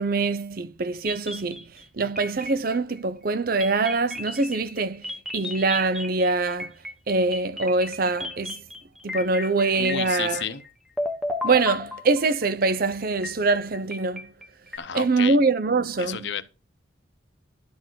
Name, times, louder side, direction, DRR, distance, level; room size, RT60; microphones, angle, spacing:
voice 1, 0.0-1.7 2.0-6.7 7.1-8.6 9.0-10.4 11.4-14.3 14.9-16.3, right 3 dB, 50° right, 0.6 m, -24 dB
sound 1, 1.1-1.8 2.2-3.0 3.6-10.7 11.0-12.5 13.2-14.8, left 2 dB, ahead, 1.0 m, -34 dB
voice 2, 9.8-10.6 14.8-15.4 16.0-16.4, left 8 dB, 60° left, 0.7 m, -31 dB
12.0 x 4.5 x 6.2 m
head